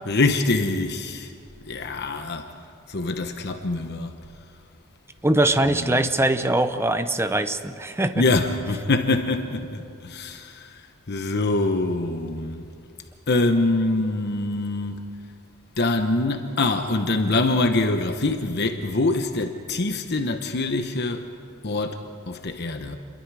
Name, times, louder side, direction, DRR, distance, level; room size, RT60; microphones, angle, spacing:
voice 1, 0.1-1.3 1.7-2.5 2.9-4.1 5.8-6.1 8.2-10.8 11.1-12.6 13.3-14.9 15.8-21.3 21.6-23.0, left 2 dB, 50° left, 1.0 m, -24 dB
voice 2, 5.2-8.2, right 1 dB, 10° right, 0.8 m, -22 dB
29.0 x 22.5 x 4.8 m
head